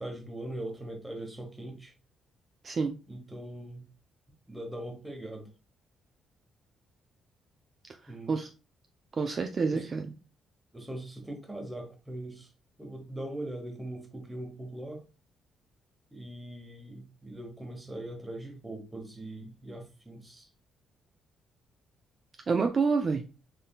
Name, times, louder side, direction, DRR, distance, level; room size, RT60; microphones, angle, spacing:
voice 1, 0.0-1.9 3.1-3.9 4.5-5.5 8.1-8.4 9.7-9.9 10.7-12.5 12.8-15.1 16.1-20.5, right 1 dB, 10° right, 1.0 m, -41 dB
voice 2, 2.6-3.0 8.3-8.5 9.2-10.1 22.5-23.2, right 4 dB, 40° right, 0.3 m, -27 dB
3.6 x 2.6 x 2.3 m
cardioid pair, 90°, 0 cm